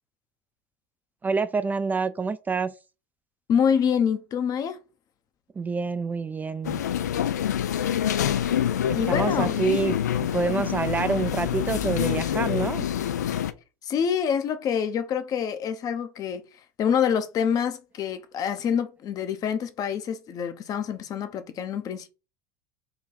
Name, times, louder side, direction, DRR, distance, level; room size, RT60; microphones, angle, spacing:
voice 1, 1.2-2.7 5.6-6.8 9.1-12.8, right 4 dB, 20° right, 0.3 m, -27 dB
voice 2, 3.5-4.8 8.9-9.7 10.5-10.7 13.8-16.4 16.8-22.1, left 7 dB, 45° left, 0.7 m, -26 dB
sound 1, 6.6-13.5, left 10 dB, 85° left, 0.4 m, -26 dB
3.9 x 2.3 x 4.1 m
hypercardioid pair, 75°, 9 cm